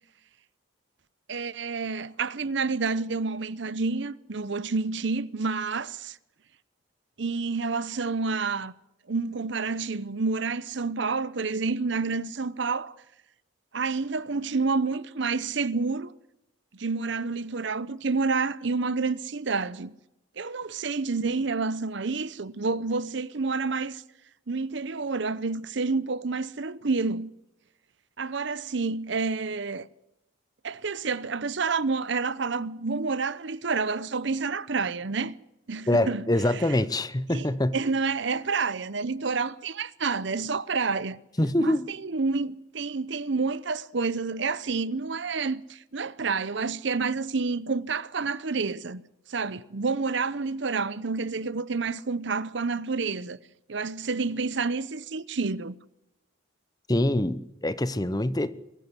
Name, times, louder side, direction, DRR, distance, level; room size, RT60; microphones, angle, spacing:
voice 1, 1.3-6.2 7.2-8.7 9.1-13.0 13.7-16.1 16.7-19.9 20.4-24.0 24.5-27.3 28.2-29.9 30.6-35.3 35.7-36.3 36.5-36.6 37.3-37.4 37.7-41.2 41.6-49.0 49.3-53.4 53.7-55.8, right 4 dB, 60° right, 0.8 m, -29 dB
voice 2, 35.9-37.7 41.4-41.9 56.9-58.5, left 1 dB, 20° left, 0.8 m, -25 dB
23.0 x 14.5 x 8.1 m
head